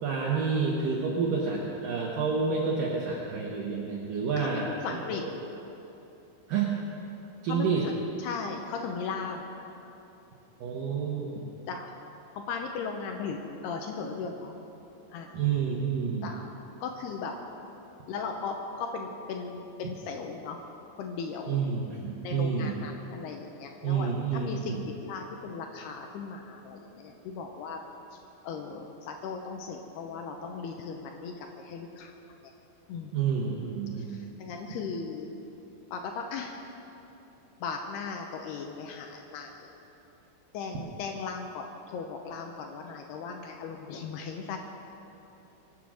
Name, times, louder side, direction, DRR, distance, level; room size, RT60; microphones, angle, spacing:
voice 1, 0.0-5.0 6.5-6.7 7.4-7.8 10.6-11.4 15.3-16.3 21.5-22.7 23.8-24.8 33.1-34.3, right 5 dB, 75° right, -3 dB, 2.0 m, -29 dB
voice 2, 4.4-5.2 7.5-7.9 8.2-9.5 11.7-11.9 12.3-14.5 15.1-15.4 16.2-16.5 16.8-17.3 18.1-20.6 21.0-21.6 22.2-27.8 28.4-32.1 32.4-32.5 32.9-33.1 34.1-35.3 35.9-36.6 37.6-39.7 40.5-44.6, left 5 dB, 85° left, 3 dB, 2.3 m, -37 dB
24.0 x 8.1 x 6.3 m, 2.9 s
omnidirectional pair, 5.8 m